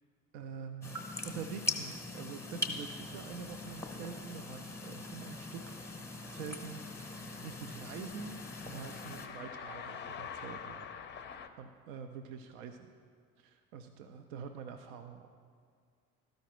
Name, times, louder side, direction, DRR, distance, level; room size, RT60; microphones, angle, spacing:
voice 1, 0.3-5.8 6.3-10.9 11.6-12.8 13.4-15.3, right 6 dB, 65° right, 6 dB, 0.6 m, -46 dB
sound 1, 0.8-9.3, left 2 dB, 5° left, 0.9 m, -41 dB
sound 2, 2.5-11.5, left 7 dB, 25° left, 0.5 m, -49 dB
13.0 x 5.2 x 3.0 m, 2.1 s
figure-of-eight pair, 50°, 42 cm